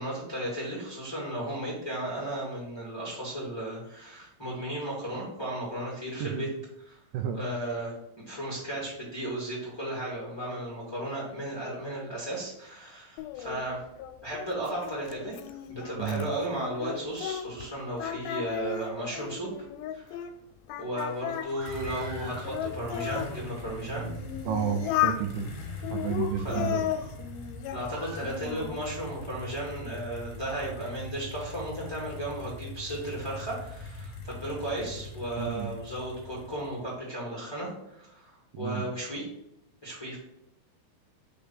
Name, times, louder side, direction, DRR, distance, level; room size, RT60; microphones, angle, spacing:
voice 1, 0.0-6.5 6.9-7.0 7.3-13.8 14.2-15.3 15.7-19.5 19.9-20.2 20.8-24.1 26.4-26.6 27.7-39.2 39.8-40.2, right 1 dB, 10° left, -6 dB, 1.3 m, -35 dB
Singing, 13.2-17.7 18.0-20.3 20.7-23.3 23.9-25.2 25.8-27.8 28.2-28.8, left 11 dB, 85° left, 2.4 m, -34 dB
sound 1, 21.0-36.9, left 1 dB, 60° left, 2.1 m, -42 dB
Screaming, 21.4-22.5 22.9-23.7 24.3-24.9 25.4-25.6 26.1-27.1 27.9-28.9, right 1 dB, 65° right, 2.5 m, -45 dB
voice 2, 24.5-25.5 25.9-26.9 35.4-35.7 38.5-38.8, right 8 dB, 85° right, 4 dB, 1.9 m, -31 dB
5.7 x 3.4 x 5.5 m, 0.81 s
omnidirectional pair, 4.4 m